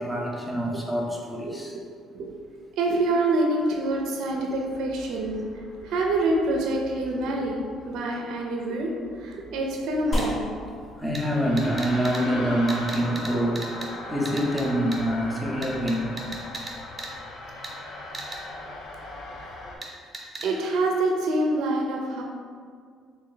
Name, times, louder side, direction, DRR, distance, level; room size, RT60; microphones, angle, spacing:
voice 1, 0.0-1.7 11.0-13.7 14.1-16.2, equal, 5° left, -2 dB, 0.6 m, -26 dB
voice 2, 1.4-1.8 2.1-2.3 2.8-5.4 5.8-8.9 9.2-10.4 13.3-13.5 19.4-19.5 20.4-22.2, right 2 dB, 75° right, 0 dB, 0.4 m, -26 dB
sound 1, 3.9-19.8, left 2 dB, 75° left, 0.6 m, -40 dB
sound 2, 10.2-10.3 11.1-11.2 11.6-12.2 12.7-13.3 13.6-13.9 14.3-14.6 14.9-15.0 15.6-16.7 17.0-17.1 17.6-17.7 18.1-18.4 19.8-19.9 20.1-20.5, right 3 dB, 25° right, 0.8 m, -36 dB
sound 3, 16.9-18.8, equal, 50° left, 1.1 m, -38 dB
3.2 x 2.6 x 3.8 m, 2.1 s
cardioid pair, 90°, 0 cm